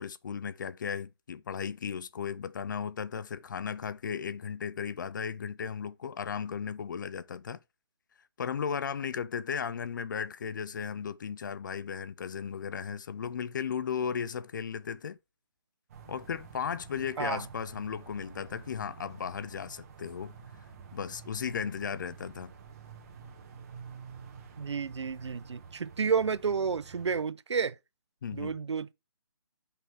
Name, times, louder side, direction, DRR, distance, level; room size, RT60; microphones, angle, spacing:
voice 1, 0.0-7.6 8.4-15.2 16.1-20.3 20.9-22.5 28.2-28.6, left 7 dB, 45° left, 0.5 m, -35 dB
sound 1, 15.9-27.2, right 6 dB, 35° right, 1.4 m, -49 dB
voice 2, 24.6-27.7 28.3-28.9, right 6 dB, 90° right, 0.6 m, -31 dB
8.0 x 5.5 x 3.5 m
hypercardioid pair, 160°, 14 cm